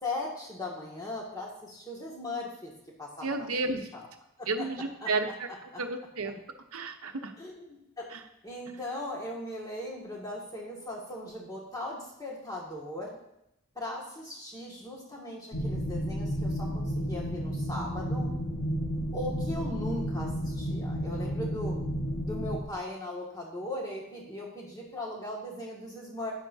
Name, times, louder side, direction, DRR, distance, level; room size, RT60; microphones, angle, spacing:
voice 1, 0.0-2.7 3.0-4.1 4.4-4.7 5.0-5.1 5.7-5.8 7.4-8.1 8.4-13.2 13.8-18.3 19.1-21.8 22.2-26.3, left 1 dB, 15° left, -4 dB, 2.1 m, -38 dB
voice 2, 3.2-3.9 4.5-5.5 5.8-6.4 6.7-7.3 8.1-8.2, right 3 dB, 85° right, 6 dB, 0.9 m, -32 dB
sound 1, 15.5-22.6, equal, 80° left, 1.6 m, -32 dB
12.0 x 10.0 x 2.8 m, 0.82 s
head